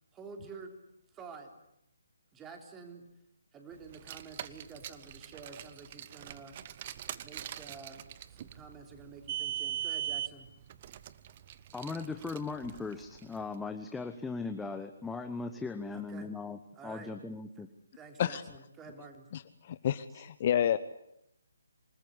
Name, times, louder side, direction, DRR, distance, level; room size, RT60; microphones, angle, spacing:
voice 1, 0.1-0.8 1.1-1.5 2.3-3.1 3.5-6.8 7.2-10.5 15.9-16.3 16.7-17.1 17.6-17.7 17.9-19.3, right 4 dB, 15° right, 5 dB, 3.5 m, -49 dB
Car, 3.9-13.4, right 11 dB, 35° right, 1.1 m, -41 dB
voice 2, 11.7-17.7, left 4 dB, 5° left, 7 dB, 1.1 m, -38 dB
voice 3, 19.3-20.8, left 10 dB, 35° left, 14 dB, 1.0 m, -30 dB
27.5 x 20.0 x 10.0 m, 0.80 s
figure-of-eight pair, 140°, 0 cm